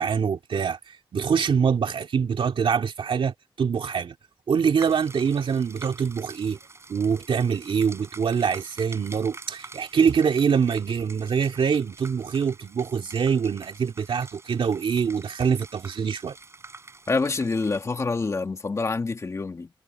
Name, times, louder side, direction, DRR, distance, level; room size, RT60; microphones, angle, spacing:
voice 1, 0.0-4.1 4.5-6.6 6.9-16.4, right 6 dB, 65° right, 2.5 m, -24 dB
sound 1, 4.8-17.9, right 3 dB, 30° right, 7.4 m, -47 dB
voice 2, 17.1-19.7, left 3 dB, 30° left, 1.7 m, -26 dB
wide cardioid pair, 150°, 9 cm